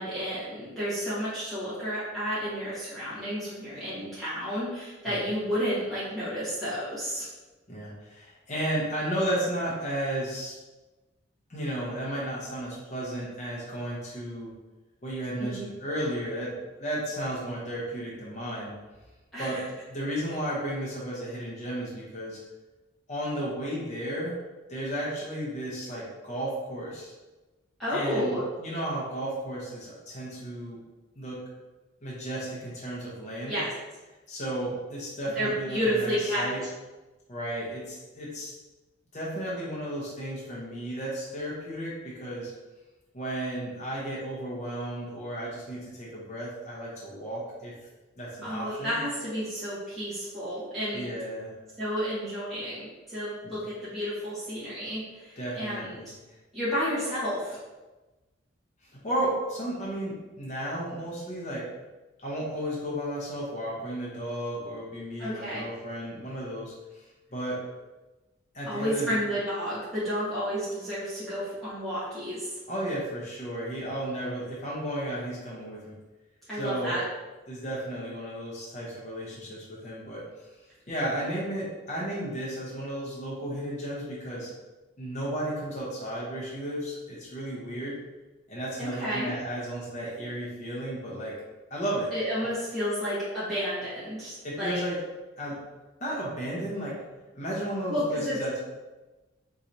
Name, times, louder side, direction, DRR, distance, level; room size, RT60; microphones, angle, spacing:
voice 1, 0.0-7.3 15.4-15.6 19.3-19.6 27.8-28.4 33.5-33.7 35.3-36.7 48.4-51.1 51.8-55.9 56.5-57.6 65.2-65.6 68.7-72.5 76.5-77.0 88.8-89.3 92.1-94.8 97.9-98.4, equal, ahead, -14 dB, 1.3 m, -31 dB
voice 2, 7.7-10.5 11.5-14.5 15.0-16.5 16.8-18.7 19.4-19.6 19.9-22.4 23.1-24.4 24.7-27.1 27.9-30.8 31.2-31.4 32.0-33.6 34.3-36.6 37.3-38.5 39.1-42.5 43.1-47.7 48.2-49.0 50.9-51.5 55.4-56.1 59.0-61.6 62.2-67.6 68.5-69.2 72.7-75.8 76.5-77.0 77.5-80.2 80.9-84.5 85.0-87.9 88.5-91.3 91.7-92.1 94.4-95.0 95.4-95.6 96.0-97.0 97.3-98.5, right 1 dB, 35° left, -6 dB, 0.8 m, -33 dB
3.8 x 3.0 x 2.7 m, 1.1 s
head